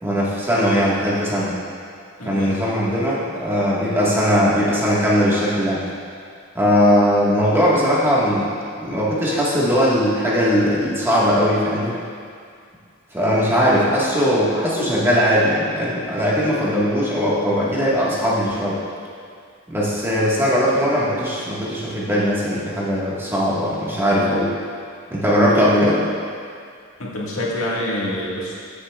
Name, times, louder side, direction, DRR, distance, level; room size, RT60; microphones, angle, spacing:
voice 1, 0.0-1.6 2.2-5.8 6.5-12.0 13.1-18.8 19.7-24.5 25.1-26.0, equal, 10° right, -7 dB, 1.6 m, -19 dB
voice 2, 2.2-2.6 27.0-28.6, left 1 dB, 90° left, -5 dB, 1.8 m, -26 dB
14.0 x 7.0 x 2.4 m, 2.2 s
head